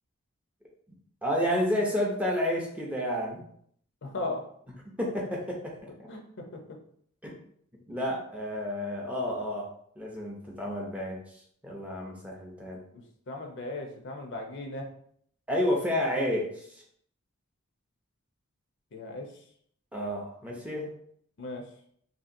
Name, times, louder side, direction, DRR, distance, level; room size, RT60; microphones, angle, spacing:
voice 1, 1.2-3.4 5.0-6.1 7.2-7.4 7.9-9.7 10.0-11.2 11.6-12.8 15.5-16.8 19.9-20.9, equal, 5° right, -2 dB, 0.5 m, -30 dB
voice 2, 4.0-4.4 6.1-6.2 12.9-14.9 18.9-19.3 21.4-21.6, left 2 dB, 55° left, 2 dB, 0.5 m, -37 dB
2.8 x 2.7 x 2.5 m, 0.65 s
head